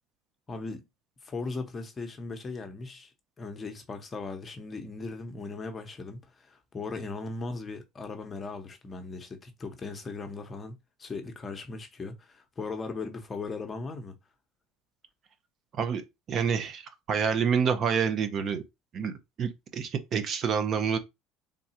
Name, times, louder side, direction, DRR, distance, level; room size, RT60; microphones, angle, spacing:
voice 1, 0.5-0.8 1.2-3.1 3.4-14.1, left 3 dB, 25° left, 0.9 m, -38 dB
voice 2, 16.3-16.8 17.1-18.6 18.9-19.1 19.4-21.0, right 6 dB, 40° right, 0.6 m, -27 dB
3.7 x 2.3 x 4.2 m
supercardioid pair, 120°, 0 cm